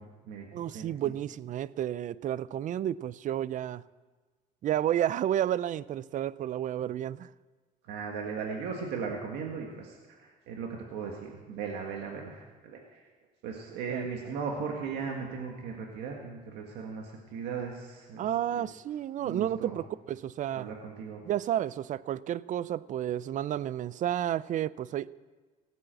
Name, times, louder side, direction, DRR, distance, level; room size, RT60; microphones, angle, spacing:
voice 1, 0.0-0.5 0.7-1.1 7.9-13.0 13.4-18.3 18.5-18.6 19.2-19.8 20.5-21.2, right 5 dB, 85° right, 1.8 m, -37 dB
voice 2, 0.5-3.8 4.6-7.3 13.9-14.0 18.2-20.7 21.3-25.1, right 11 dB, 50° right, 0.4 m, -31 dB
17.5 x 8.4 x 7.7 m
cardioid pair, 110°, 17 cm